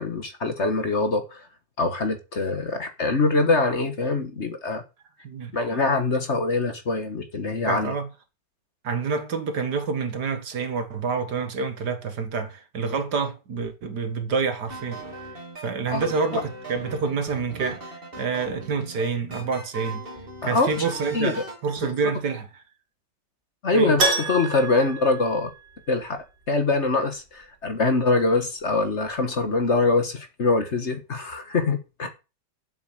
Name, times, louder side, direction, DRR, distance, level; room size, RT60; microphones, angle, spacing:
voice 1, 0.0-1.4 1.8-4.8 5.5-7.9 15.9-16.4 20.4-20.7 21.1-21.3 21.8-21.9 23.6-25.5 25.9-32.1, left 3 dB, 40° left, 1.6 m, -24 dB
voice 2, 5.2-5.8 7.7-8.1 8.8-15.0 15.6-20.0 20.4-22.5 23.7-24.0, right 5 dB, 65° right, 2.1 m, -28 dB
sound 1, 14.7-21.6, right 2 dB, 30° right, 2.8 m, -39 dB
Keyboard (musical), 24.0-26.0 26.3-26.4 29.1-29.2 29.4-29.5, right 2 dB, 85° right, 3.1 m, -27 dB
7.8 x 6.9 x 8.1 m
omnidirectional pair, 1.9 m